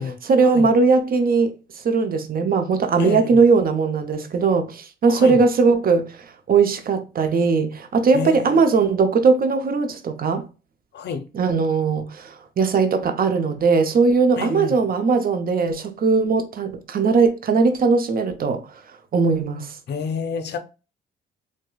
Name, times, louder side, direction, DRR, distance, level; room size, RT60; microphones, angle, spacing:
voice 1, 0.0-10.5 11.3-18.8 19.1-19.8, right 4 dB, 45° right, 0.6 m, -19 dB
voice 2, 3.0-3.4 5.1-5.4 8.1-8.7 10.9-11.3 14.4-14.8 19.9-20.6, left 6 dB, 60° left, 0.6 m, -29 dB
4.8 x 2.1 x 2.3 m
cardioid pair, 90°, 20 cm